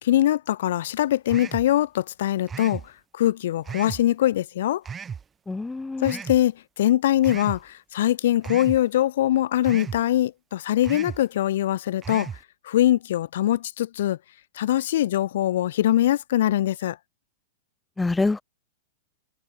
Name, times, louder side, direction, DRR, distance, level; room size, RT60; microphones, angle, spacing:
voice 1, 0.0-2.8 3.1-4.8 6.0-12.3 12.6-14.2 14.6-17.0, left 12 dB, 65° left, 2.6 m, -22 dB
sound 1, 1.3-1.7 2.5-2.9 3.7-4.0 4.9-5.2 6.0-6.4 7.2-7.6 8.4-8.8 9.6-10.0 10.8-11.2 12.0-12.4, right 6 dB, 20° right, 5.7 m, -35 dB
voice 2, 5.5-6.2 18.0-18.4, left 3 dB, 10° left, 1.8 m, -26 dB
hypercardioid pair, 105°, 0 cm